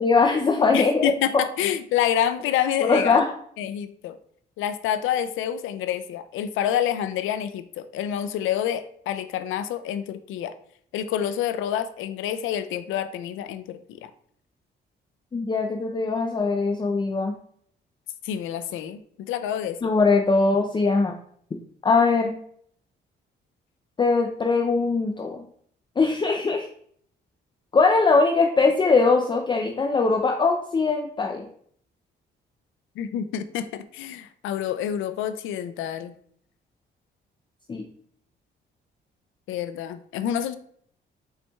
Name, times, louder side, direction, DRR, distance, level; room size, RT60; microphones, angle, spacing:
voice 1, 0.0-1.4 2.9-3.3 15.3-17.3 19.8-21.1 21.8-22.3 24.0-25.5 26.0-26.7 27.7-31.5 37.7-37.8, left 4 dB, 25° left, 2 dB, 0.5 m, -21 dB
voice 2, 0.7-3.2 3.6-4.2 4.6-10.5 10.9-14.1 18.2-19.8 33.0-36.1 39.5-40.5, left 10 dB, 90° left, 11 dB, 0.5 m, -27 dB
5.4 x 4.3 x 2.3 m, 0.62 s
cardioid pair, 90°, 20 cm